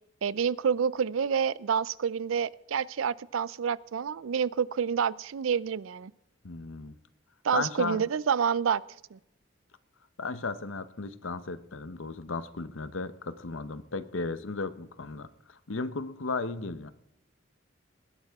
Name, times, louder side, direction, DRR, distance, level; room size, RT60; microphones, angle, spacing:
voice 1, 0.2-6.1 7.4-8.8 9.1-9.2, right 7 dB, 85° right, 21 dB, 0.4 m, -28 dB
voice 2, 6.4-7.0 7.5-8.0 10.2-16.9, left 3 dB, 80° left, 13 dB, 0.9 m, -35 dB
20.0 x 11.0 x 3.6 m, 0.82 s
head